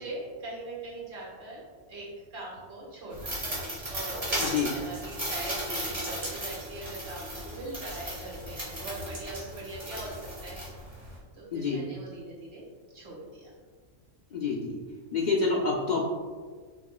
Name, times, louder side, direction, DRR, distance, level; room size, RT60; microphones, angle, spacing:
voice 1, 0.0-1.6 1.9-2.1 2.3-10.1 10.4-10.6 11.3-12.6 12.9-13.5, right 2 dB, 75° right, -6 dB, 1.6 m, -41 dB
sound 1, 3.1-11.2, right 1 dB, 30° right, 1.4 m, -36 dB
voice 2, 11.5-11.8 14.3-14.8 15.1-16.0, left 4 dB, 80° left, -3 dB, 0.4 m, -27 dB
5.7 x 3.0 x 2.3 m, 1.5 s
omnidirectional pair, 1.3 m